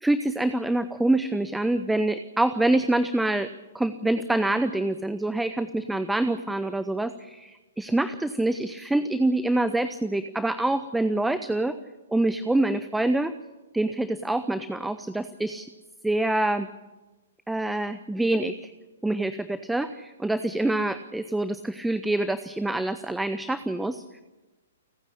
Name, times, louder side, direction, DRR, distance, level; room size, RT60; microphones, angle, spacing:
voice 1, 0.0-3.5 3.7-11.8 12.1-13.3 13.7-15.7 16.0-16.7 17.5-18.7 19.0-24.0, right 2 dB, 5° right, 12 dB, 0.7 m, -26 dB
29.5 x 9.9 x 9.9 m, 1.1 s
figure-of-eight pair, 120°, 0 cm